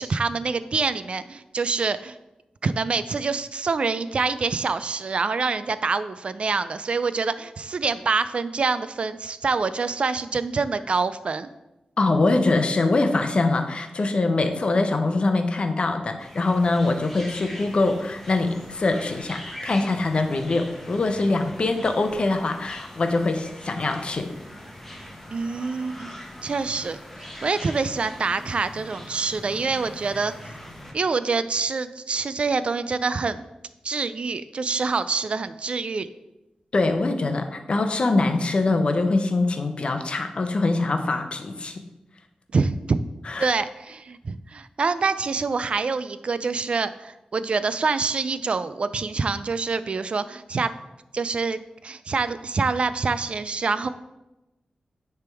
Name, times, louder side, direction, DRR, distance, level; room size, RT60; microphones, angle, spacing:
voice 1, 0.0-2.2 2.6-11.5 25.3-26.1 26.4-27.0 27.4-30.3 30.9-33.4 33.8-36.1 42.5-43.0 43.4-50.7 51.1-53.9, right 4 dB, 50° right, 13 dB, 0.3 m, -26 dB
voice 2, 12.0-24.3 36.7-41.8 43.2-43.5, left 3 dB, 45° left, 7 dB, 0.7 m, -23 dB
sound 1, 16.2-30.9, left 1 dB, 10° left, 1.1 m, -42 dB
9.8 x 3.5 x 4.6 m, 0.98 s
wide cardioid pair, 110°, 2 cm